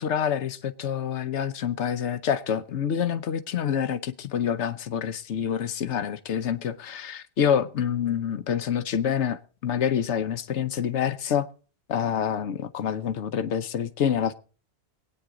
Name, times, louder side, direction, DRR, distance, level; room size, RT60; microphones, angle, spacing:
voice 1, 0.0-11.5 11.9-14.3, left 8 dB, 80° left, 1.2 m, -27 dB
23.5 x 9.2 x 3.7 m
omnidirectional pair, 1.2 m